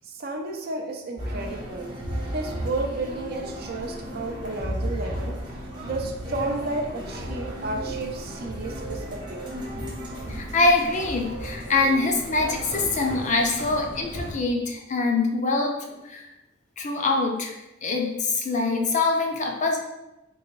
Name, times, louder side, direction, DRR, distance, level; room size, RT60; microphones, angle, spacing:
voice 1, 0.2-2.0 2.3-5.4 5.8-9.4, right 2 dB, 55° right, 3 dB, 0.4 m, -32 dB
sound 1, 1.2-14.3, equal, 25° right, 0.8 m, -34 dB
voice 2, 10.3-15.7 16.1-16.2 16.8-17.5 17.8-19.8, left 3 dB, 40° left, 2 dB, 0.5 m, -24 dB
3.7 x 2.5 x 3.0 m, 0.95 s
head